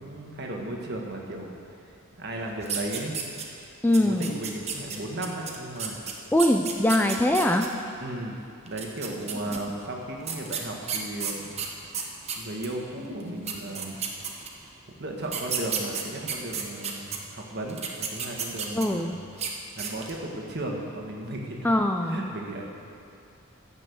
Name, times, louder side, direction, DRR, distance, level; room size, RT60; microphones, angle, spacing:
voice 1, 0.0-1.5 2.2-3.4 4.0-6.0 8.0-11.5 12.3-14.0 15.0-19.1 19.8-21.7 22.0-22.6, right 1 dB, 50° right, 0 dB, 1.5 m, -35 dB
sound 1, 2.6-3.6 3.9-7.7 8.7-9.6 10.2-12.7 13.2-13.3 13.5-14.7 15.2-17.2 17.7-19.0 19.3-19.5 19.8-20.2, right 7 dB, 30° right, 1.0 m, -32 dB
voice 2, 3.8-4.3 6.3-7.7 9.5-9.6 18.7-19.2 21.6-22.3, left 1 dB, 10° left, 4 dB, 0.4 m, -23 dB
15.5 x 5.5 x 7.0 m, 2.5 s
head